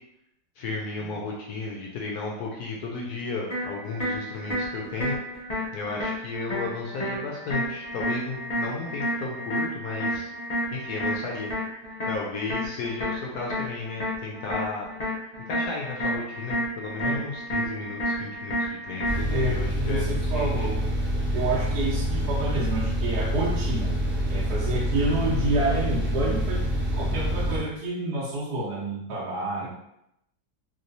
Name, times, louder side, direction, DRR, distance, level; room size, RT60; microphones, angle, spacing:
voice 1, 0.6-5.2 5.7-10.3 10.7-11.5 12.1-14.9 15.5-20.0 20.3-20.7 29.6-29.7, left 3 dB, 70° left, -1 dB, 1.0 m, -34 dB
sound 1, 3.5-19.5, equal, 45° left, 0.5 m, -31 dB
Yanmar Engine Fast, 19.0-27.6, equal, 10° right, 0.5 m, -26 dB
voice 2, 19.3-20.8 21.3-23.9 24.3-26.6 26.9-29.7, right 2 dB, 70° right, -6 dB, 1.3 m, -29 dB
3.1 x 2.9 x 2.6 m, 0.82 s
omnidirectional pair, 1.8 m